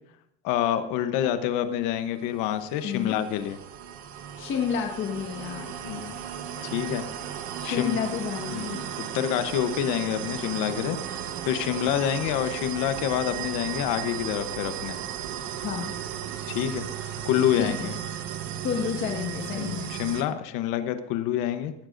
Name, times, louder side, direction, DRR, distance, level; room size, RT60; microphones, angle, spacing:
voice 1, 0.4-3.6 5.8-6.1 6.6-7.0 7.6-8.0 8.5-15.0 16.5-16.8 17.2-17.9 19.5-21.7, left 10 dB, 75° left, 9 dB, 1.0 m, -27 dB
sound 1, 2.2-20.2, right 9 dB, 75° right, 1.3 m, -35 dB
voice 2, 2.8-3.2 4.4-5.8 7.6-8.9 15.6-15.9 17.5-17.9 18.6-19.9, left 7 dB, 40° left, 1 dB, 1.5 m, -30 dB
19.5 x 15.0 x 2.6 m, 0.75 s
cardioid pair, 170°, 32 cm